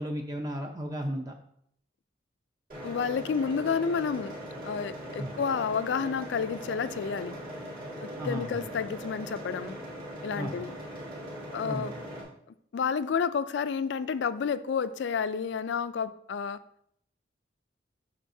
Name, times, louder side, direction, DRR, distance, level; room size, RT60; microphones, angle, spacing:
voice 1, 0.0-1.3 5.2-5.3 8.2-8.6 10.4-10.5 11.6-11.9, equal, 20° right, 3 dB, 0.5 m, -34 dB
sound 1, 2.7-12.2, equal, 45° right, 2.1 m, -40 dB
voice 2, 2.8-4.4 4.6-7.4 8.0-9.8 10.2-10.7 11.5-12.0 12.7-16.6, left 6 dB, 70° left, 13 dB, 0.4 m, -30 dB
11.0 x 4.2 x 2.7 m, 0.69 s
head